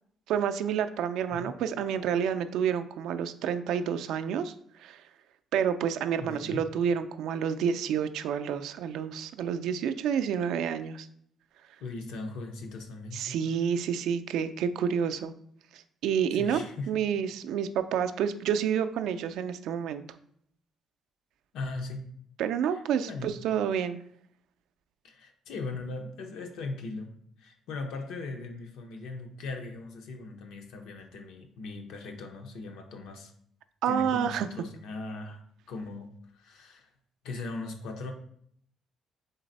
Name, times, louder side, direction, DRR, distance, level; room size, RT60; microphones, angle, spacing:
voice 1, 0.3-4.5 4.8-5.0 5.5-11.1 13.1-15.3 15.7-16.6 16.9-20.0 22.4-24.0 33.8-34.5, right 8 dB, 80° right, 9 dB, 0.3 m, -29 dB
voice 2, 6.2-6.6 11.8-13.4 16.3-16.9 21.5-22.0 22.7-22.8 23.1-23.3 25.0-27.1 27.4-33.3 33.9-35.4 35.7-36.9 37.2-38.1, left 3 dB, 85° left, 4 dB, 0.7 m, -39 dB
3.9 x 3.3 x 4.0 m, 0.67 s
cardioid pair, 135°, 0 cm